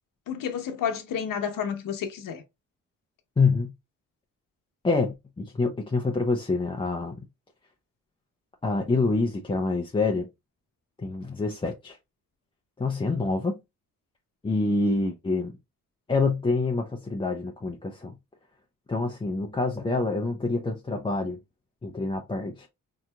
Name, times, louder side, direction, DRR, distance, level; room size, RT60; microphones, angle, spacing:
voice 1, 0.3-2.4, left 8 dB, 75° left, 0.9 m, -30 dB
voice 2, 3.4-3.7 4.8-7.2 8.6-10.3 11.0-12.0 12.8-13.6 14.4-15.6 16.1-18.1 18.9-21.4 21.8-22.7, left 3 dB, 15° left, 0.5 m, -26 dB
3.8 x 2.8 x 2.3 m
cardioid pair, 90°, 34 cm